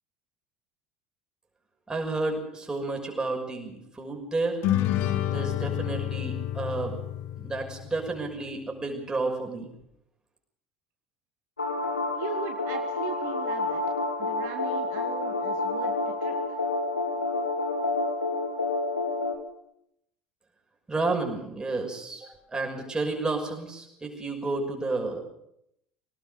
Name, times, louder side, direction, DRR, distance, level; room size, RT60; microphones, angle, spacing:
voice 1, 1.9-4.6 5.3-7.0 7.4-9.7 20.9-25.2, right 3 dB, 15° right, 1 dB, 6.1 m, -31 dB
sound 1, 4.6-8.2, left 12 dB, 55° left, 1.6 m, -29 dB
sound 2, 11.6-19.4, left 3 dB, 85° left, 1.9 m, -29 dB
voice 2, 12.1-13.8 14.2-16.6, right 10 dB, 55° right, 5 dB, 1.6 m, -39 dB
22.5 x 18.5 x 6.8 m, 0.77 s
figure-of-eight pair, 65°, 5 cm